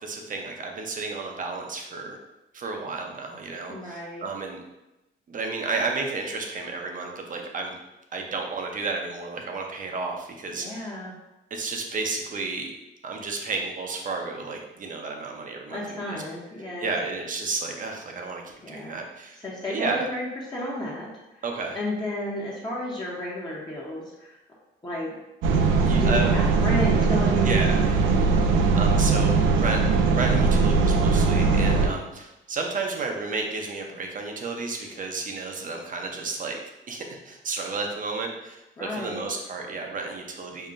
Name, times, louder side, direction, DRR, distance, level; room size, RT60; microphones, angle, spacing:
voice 1, 0.0-2.2 2.5-4.6 5.3-7.7 8.1-10.9 11.5-12.7 13.0-16.2 16.8-19.4 19.7-20.1 21.4-21.8 25.9-26.3 27.4-28.0 28.4-28.5 28.8-29.8 30.2-36.6 36.9-40.7, right 3 dB, 40° right, 2 dB, 0.7 m, -32 dB
voice 2, 3.7-4.2 10.6-11.1 15.7-16.9 18.6-19.0 19.4-21.1 21.7-24.4 24.8-25.1 25.9-27.7 38.8-39.3, left 1 dB, 20° left, -6 dB, 0.9 m, -32 dB
sound 1, 25.4-31.9, right 4 dB, 90° right, 0.4 m, -20 dB
5.5 x 2.1 x 2.5 m, 0.97 s
cardioid pair, 90°, 20 cm